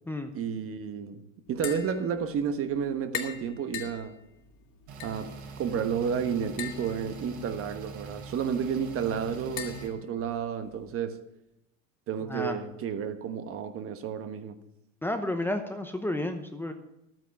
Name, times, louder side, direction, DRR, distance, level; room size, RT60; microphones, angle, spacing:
voice 1, 0.3-1.2 1.5-4.2 5.0-11.2 12.1-14.6, right 7 dB, 35° right, 1.2 m, -31 dB
Tap, 1.5-10.9, left 10 dB, 45° left, 2.4 m, -44 dB
sound 1, 4.9-9.9, right 4 dB, 60° right, 4.4 m, -43 dB
voice 2, 15.0-16.7, left 1 dB, 5° left, 0.9 m, -31 dB
12.5 x 9.3 x 5.8 m
hypercardioid pair, 100°, 40 cm